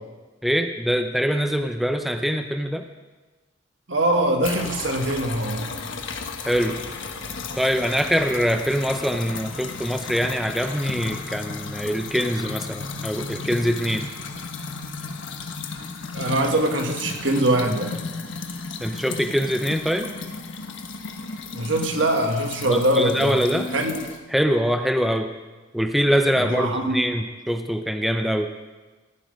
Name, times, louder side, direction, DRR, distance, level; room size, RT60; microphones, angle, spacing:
voice 1, 0.4-2.8 6.5-6.8 7.6-14.0 18.8-20.1 22.7-23.7 24.3-25.3 25.7-28.5, equal, ahead, 5 dB, 0.5 m, -23 dB
voice 2, 3.9-5.8 16.1-18.0 21.5-23.4 23.7-24.0 26.3-27.0, right 1 dB, 70° right, 3 dB, 1.6 m, -23 dB
sound 1, 4.4-24.2, left 4 dB, 75° left, 1.2 m, -34 dB
15.5 x 10.0 x 5.2 m, 1.3 s
head